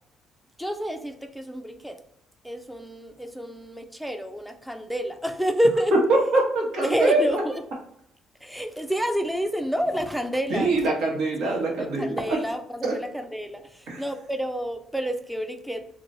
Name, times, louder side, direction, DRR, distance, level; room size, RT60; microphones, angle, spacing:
voice 1, 0.6-2.0 2.4-5.9 6.8-7.6 8.4-10.9 11.4-15.9, equal, ahead, 7 dB, 0.4 m, -29 dB
voice 2, 6.3-7.4 10.5-12.2 12.8-12.9 13.9-14.0, right 2 dB, 80° right, -1 dB, 1.0 m, -24 dB
3.0 x 2.2 x 2.6 m, 0.73 s
cardioid pair, 105°, 0 cm